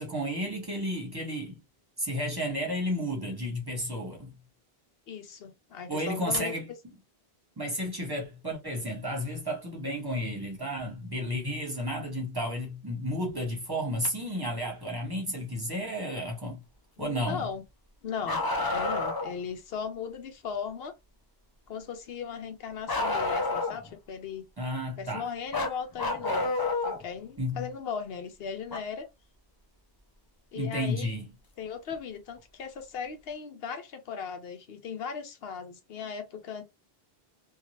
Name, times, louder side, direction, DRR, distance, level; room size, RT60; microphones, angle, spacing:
voice 1, 0.0-1.6 2.0-4.3 5.9-6.6 7.6-16.6 17.0-17.5 24.6-25.3 27.4-27.7 30.5-31.3, equal, 25° right, 1.0 m, -32 dB
voice 2, 5.1-6.6 17.0-17.6 18.0-18.4 18.7-20.9 21.7-24.5 25.0-26.5 26.8-29.1 30.5-31.1 31.6-36.6, left 6 dB, 75° left, 0.9 m, -37 dB
Bark, 18.2-19.3 22.9-23.9 25.5-27.0 28.7-28.8 30.7-30.8 31.9-32.0, left 2 dB, 30° left, 0.4 m, -29 dB
2.7 x 2.2 x 3.0 m
omnidirectional pair, 1.0 m